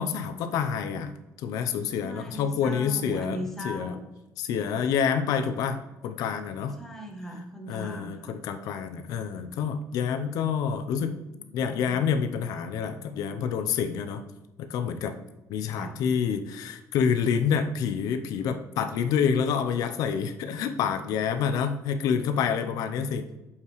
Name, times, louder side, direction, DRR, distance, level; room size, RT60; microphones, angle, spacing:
voice 1, 0.0-3.9 4.4-6.7 7.7-11.2 11.5-14.2 14.6-15.1 15.5-23.3, left 7 dB, 85° left, 8 dB, 0.6 m, -28 dB
voice 2, 2.0-4.1 4.5-4.8 6.8-8.4 11.3-12.3 15.7-16.0 22.9-23.4, equal, 5° left, 2 dB, 1.0 m, -40 dB
6.6 x 5.7 x 3.1 m, 1.0 s
cardioid pair, 160°, 6 cm